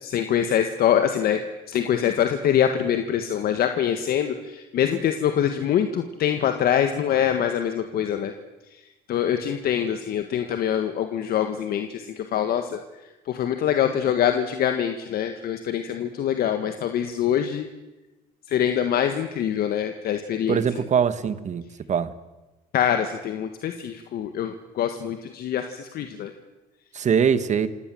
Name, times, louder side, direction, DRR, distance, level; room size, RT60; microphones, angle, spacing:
voice 1, 0.0-1.4 1.7-8.3 9.1-12.8 13.3-17.7 18.5-20.6 22.7-26.3, left 9 dB, 65° left, 7 dB, 1.6 m, -24 dB
voice 2, 20.5-22.1 26.9-27.7, right 7 dB, 45° right, 13 dB, 1.6 m, -22 dB
27.0 x 17.5 x 7.8 m, 1.1 s
cardioid pair, 110°, 17 cm